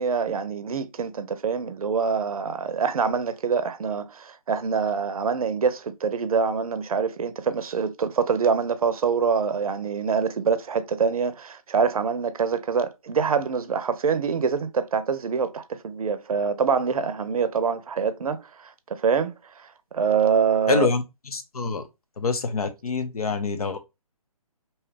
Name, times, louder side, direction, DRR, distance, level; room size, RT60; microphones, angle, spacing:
voice 1, 0.0-19.7 19.9-20.9, right 6 dB, 70° right, 0.5 m, -25 dB
voice 2, 20.7-21.9 22.2-23.8, left 5 dB, 75° left, 0.7 m, -26 dB
2.8 x 2.3 x 3.2 m
figure-of-eight pair, 145°, 19 cm